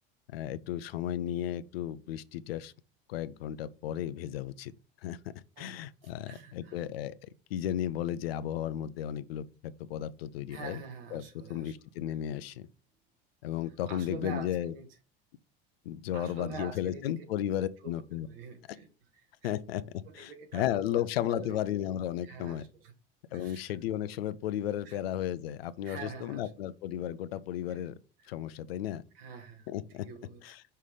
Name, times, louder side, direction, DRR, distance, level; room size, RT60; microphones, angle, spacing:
voice 1, 0.3-2.7 3.1-4.7 5.0-5.2 5.6-7.1 7.5-10.8 11.1-12.7 13.4-14.7 15.9-18.3 19.4-19.8 20.1-22.6 23.3-27.9 28.3-29.0 29.7-30.1 30.4-30.6, left 11 dB, 90° left, 0.5 m, -34 dB
voice 2, 6.3-6.8 10.5-11.7 13.9-14.9 16.1-17.2 17.8-18.0 18.2-18.9 19.4-19.5 20.1-21.6 22.2-22.9 23.3-23.6 24.8-25.0 25.8-26.5 27.7-27.8 29.1-29.7 30.0-30.4, right 5 dB, 80° right, 1.4 m, -45 dB
5.6 x 3.2 x 5.3 m
hypercardioid pair, 85°, 29 cm